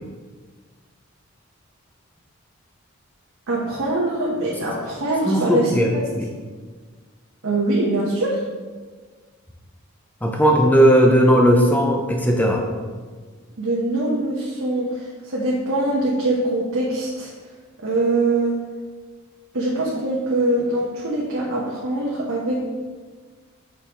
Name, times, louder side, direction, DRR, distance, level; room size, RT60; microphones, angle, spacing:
voice 1, 3.5-5.7 7.4-8.4 13.6-17.3 17.8-18.5 19.5-22.6, right 2 dB, 85° right, -5 dB, 1.0 m, -23 dB
voice 2, 5.2-5.9 6.2-6.3 10.2-12.6, equal, 10° left, 1 dB, 0.6 m, -16 dB
6.5 x 5.3 x 3.0 m, 1.5 s
head